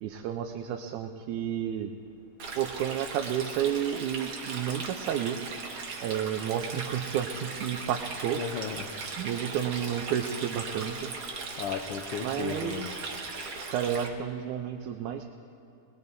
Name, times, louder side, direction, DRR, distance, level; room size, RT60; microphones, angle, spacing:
voice 1, 0.0-1.9 2.6-5.4 6.0-8.4 9.2-11.2 12.2-13.0 13.7-15.2, right 9 dB, 85° right, 3 dB, 2.2 m, -31 dB
Stream, 2.4-14.1, right 4 dB, 55° right, 1.1 m, -38 dB
voice 2, 8.2-8.9 11.6-12.9, left 7 dB, 85° left, 5 dB, 1.3 m, -35 dB
21.0 x 20.5 x 2.7 m, 2.7 s
omnidirectional pair, 3.4 m